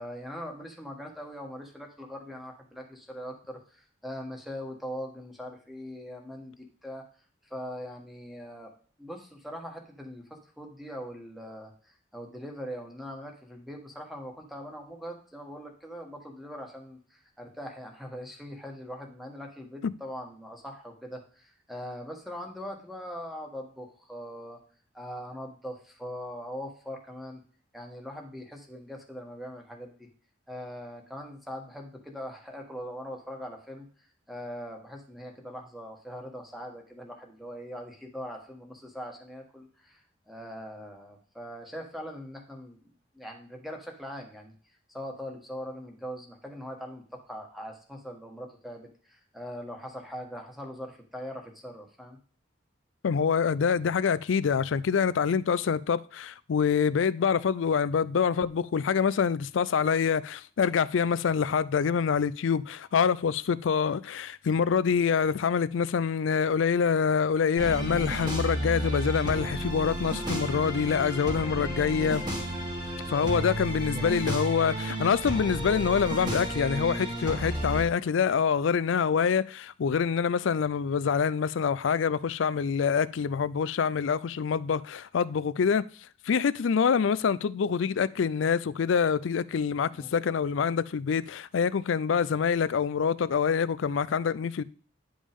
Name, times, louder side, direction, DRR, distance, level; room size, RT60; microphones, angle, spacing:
voice 1, 0.0-7.1 7.4-8.7 9.0-24.6 24.9-27.4 27.7-30.1 30.5-42.8 43.1-44.5 44.9-52.2 73.9-74.2 89.9-90.1, equal, ahead, 1.5 m, -41 dB
voice 2, 53.0-72.2 73.1-85.9 86.3-94.6, left 6 dB, 85° left, 0.4 m, -26 dB
sound 1, 67.6-77.8, right 1 dB, 25° right, 2.1 m, -32 dB
10.0 x 5.2 x 3.6 m
head